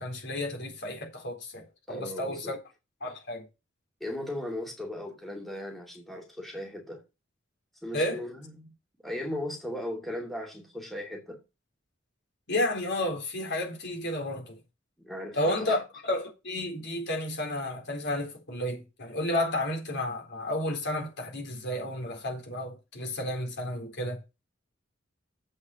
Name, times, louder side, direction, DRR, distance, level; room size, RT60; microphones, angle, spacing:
voice 1, 0.0-2.6 3.0-3.4 7.9-8.2 12.5-14.6 15.3-24.2, left 1 dB, 60° left, 3.9 m, -32 dB
voice 2, 1.9-2.5 4.0-7.0 7.8-8.7 9.0-11.4 15.0-15.8, left 1 dB, ahead, 2.4 m, -37 dB
7.9 x 5.8 x 6.9 m
head